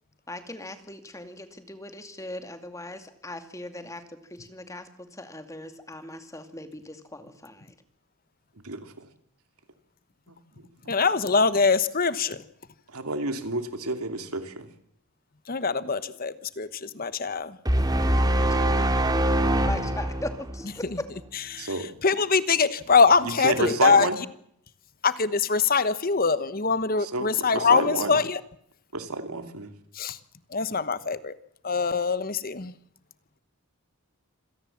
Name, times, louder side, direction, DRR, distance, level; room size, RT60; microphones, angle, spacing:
voice 1, 0.3-4.0 4.3-7.7 19.6-20.9, left 1 dB, 15° left, 8 dB, 2.3 m, -39 dB
voice 2, 8.6-9.1 10.8-10.9 12.9-14.7 19.8-19.9 21.6-21.9 23.2-24.2 27.0-28.2 28.9-29.7, right 3 dB, 85° right, 8 dB, 2.8 m, -30 dB
voice 3, 10.9-12.4 15.5-17.6 20.8-21.0 21.3-21.7 22.0-24.1 25.0-28.4 29.9-30.2 30.5-31.4 31.6-32.7, left 5 dB, 40° left, 14 dB, 1.1 m, -23 dB
sound 1, 17.7-21.0, right 1 dB, 15° right, 2.6 m, -23 dB
27.0 x 17.5 x 7.4 m, 0.71 s
head